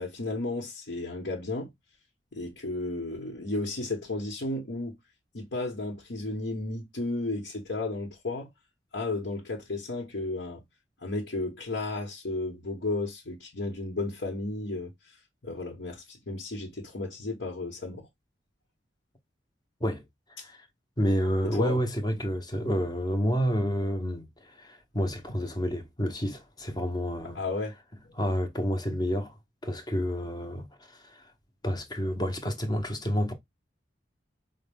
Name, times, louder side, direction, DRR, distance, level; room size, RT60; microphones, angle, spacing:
voice 1, 0.0-1.7 2.3-5.0 5.3-8.5 8.9-10.6 11.0-14.9 15.4-18.1 21.6-21.8 27.3-27.7 28.0-28.1, left 2 dB, 75° left, 1.1 m, -33 dB
voice 2, 21.0-27.4 28.2-29.4 29.6-31.2 31.6-33.3, equal, 25° left, 0.8 m, -29 dB
5.0 x 2.1 x 3.4 m
head